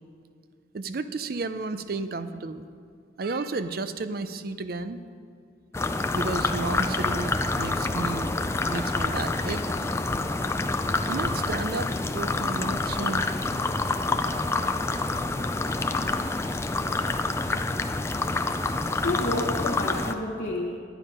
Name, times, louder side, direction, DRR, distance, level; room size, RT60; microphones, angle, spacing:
voice 1, 0.7-2.7 3.2-5.0 6.1-8.3 8.7-9.7 11.1-13.2, right 3 dB, 50° right, 12 dB, 0.5 m, -32 dB
sound 1, 5.7-20.1, left 3 dB, 15° left, 0.3 m, -27 dB
voice 2, 19.0-20.8, left 1 dB, 50° left, -6 dB, 1.2 m, -30 dB
12.0 x 9.1 x 5.4 m, 2.3 s
head